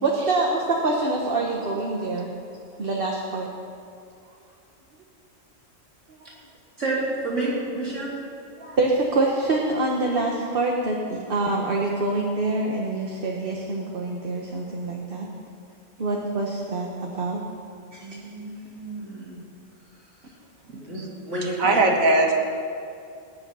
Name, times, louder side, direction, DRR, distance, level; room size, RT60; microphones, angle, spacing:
voice 1, 0.0-2.3 2.8-3.5 8.6-15.3 16.0-17.4 17.9-18.1, right 2 dB, 45° right, -1 dB, 1.3 m, -25 dB
voice 2, 6.8-8.1 18.0-19.4 20.9-21.0 21.3-21.8, right 2 dB, 65° right, -7 dB, 4.1 m, -29 dB
voice 3, 20.7-21.1 21.6-22.3, right 2 dB, 90° right, 2 dB, 1.9 m, -20 dB
19.0 x 8.8 x 5.5 m, 2.4 s
omnidirectional pair, 1.4 m